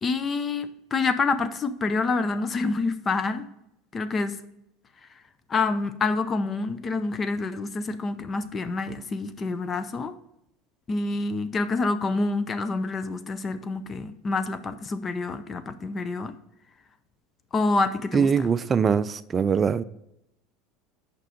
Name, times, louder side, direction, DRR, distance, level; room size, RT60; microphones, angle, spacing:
voice 1, 0.0-3.5 3.9-4.4 5.5-10.1 10.9-16.3 17.5-18.5, left 3 dB, 25° left, 0.6 m, -27 dB
voice 2, 18.1-19.8, right 6 dB, 25° right, 0.4 m, -22 dB
6.6 x 5.3 x 4.9 m
supercardioid pair, 115°, 0 cm